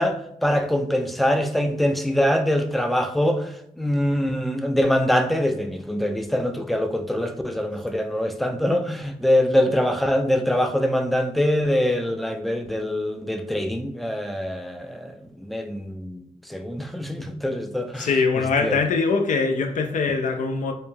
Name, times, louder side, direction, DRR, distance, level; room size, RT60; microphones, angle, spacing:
voice 1, 0.0-3.5 3.8-15.1 15.4-18.1 18.6-18.8, left 1 dB, ahead, 0.4 m, -24 dB
voice 2, 18.0-20.7, left 4 dB, 65° left, 0.4 m, -22 dB
3.1 x 2.0 x 2.2 m
supercardioid pair, 40°, 14 cm